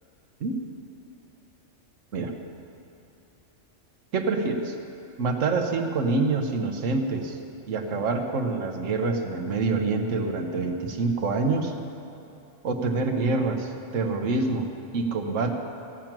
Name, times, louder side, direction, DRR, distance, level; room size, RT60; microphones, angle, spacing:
voice 1, 4.1-4.7 5.2-7.4 7.7-11.7 12.6-14.7 14.9-15.6, right 3 dB, 85° right, 4 dB, 1.4 m, -26 dB
16.0 x 6.0 x 8.9 m, 2.8 s
omnidirectional pair, 1.3 m